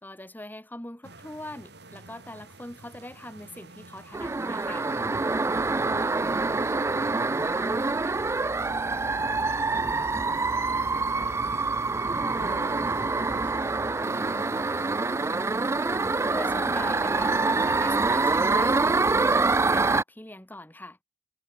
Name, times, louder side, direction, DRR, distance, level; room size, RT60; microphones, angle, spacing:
voice 1, 0.0-4.9 16.3-21.0, left 1 dB, 10° left, 2.2 m, -41 dB
sound 1, 1.0-16.3, right 2 dB, 70° right, 6.4 m, -50 dB
sound 2, 4.1-20.0, right 3 dB, 15° right, 0.3 m, -26 dB
voice 2, 5.6-8.3 8.9-12.6 12.9-15.0, left 1 dB, 50° left, 5.7 m, -50 dB
head